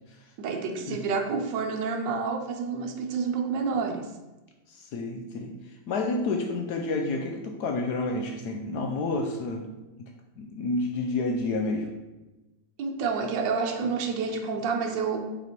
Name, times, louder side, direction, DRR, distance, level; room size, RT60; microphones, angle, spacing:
voice 1, 0.4-4.1 12.8-15.3, right 5 dB, 75° right, 4 dB, 1.4 m, -29 dB
voice 2, 4.7-5.5 5.9-9.6 10.4-11.9, left 2 dB, 70° left, 2 dB, 1.1 m, -29 dB
5.7 x 4.2 x 4.5 m, 1.1 s
omnidirectional pair, 2.0 m